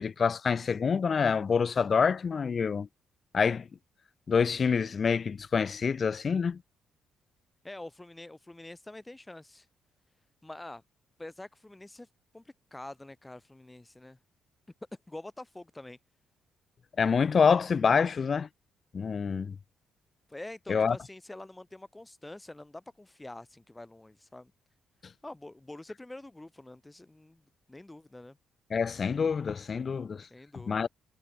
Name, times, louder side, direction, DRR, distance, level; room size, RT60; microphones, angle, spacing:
voice 1, 0.0-2.9 3.3-3.7 4.3-6.6 17.0-18.5 18.9-19.6 20.7-21.0 28.7-30.3 30.5-30.9, left 6 dB, 40° left, 1.0 m, -26 dB
voice 2, 7.6-9.7 10.4-10.8 11.2-12.1 12.3-12.4 12.7-14.2 15.1-16.0 20.3-24.5 25.2-27.4 27.7-28.4 30.3-30.9, left 2 dB, 10° left, 5.0 m, -46 dB
cardioid pair, 90°, 0 cm